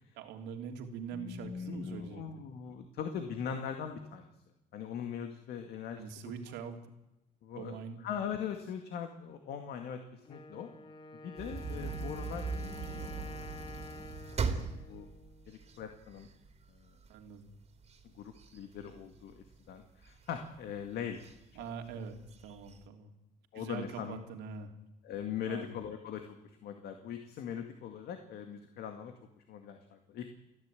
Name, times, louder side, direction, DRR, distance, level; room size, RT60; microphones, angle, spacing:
voice 1, 0.2-2.2 6.0-6.8 7.5-8.0 17.1-17.5 21.5-23.1 23.5-24.7 25.4-25.7, right 6 dB, 85° right, 4 dB, 3.1 m, -43 dB
voice 2, 1.1-4.3 4.7-6.0 7.4-10.7 11.2-12.4 12.9-13.1 14.9-15.1 15.5-16.3 16.7-16.9 18.0-21.3 23.5-24.2 25.0-30.3, left 8 dB, 70° left, 6 dB, 2.2 m, -41 dB
Wind instrument woodwind instrument, 10.2-16.0, left 3 dB, 30° left, 1.5 m, -49 dB
sound 1, 11.4-16.6 17.0-17.1 17.5-19.5 20.1-20.6 21.2-21.3 21.6-21.7 22.2-22.8, right 4 dB, 40° right, 2.9 m, -38 dB
29.5 x 11.0 x 9.2 m, 0.91 s
cardioid pair, 110°, 17 cm